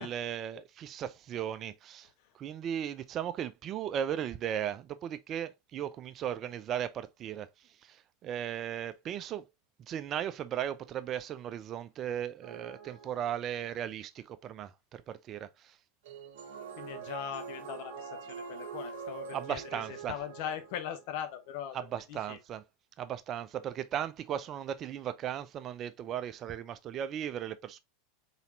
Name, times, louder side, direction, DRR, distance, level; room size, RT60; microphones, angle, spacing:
voice 1, 0.0-2.1 2.4-7.5 7.8-9.4 9.9-15.7 19.3-20.1 21.7-22.6 23.0-27.8, right 10 dB, 40° right, 0.5 m, -36 dB
sound 1, 12.4-13.7 16.0-21.3, right 6 dB, 60° right, 0.9 m, -44 dB
voice 2, 16.8-22.4, left 9 dB, 55° left, 1.0 m, -40 dB
4.1 x 4.1 x 2.7 m
figure-of-eight pair, 85°, 0 cm